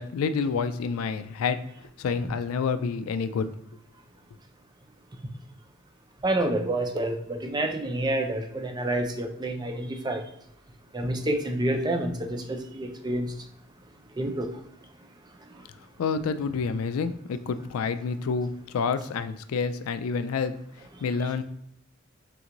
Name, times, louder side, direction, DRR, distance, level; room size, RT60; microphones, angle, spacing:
voice 1, 0.0-3.5 16.0-21.4, left 5 dB, 85° left, 12 dB, 0.3 m, -29 dB
voice 2, 6.2-10.2 10.9-13.3 14.2-14.5, right 1 dB, 20° right, 4 dB, 0.4 m, -28 dB
3.3 x 3.0 x 3.8 m, 0.76 s
head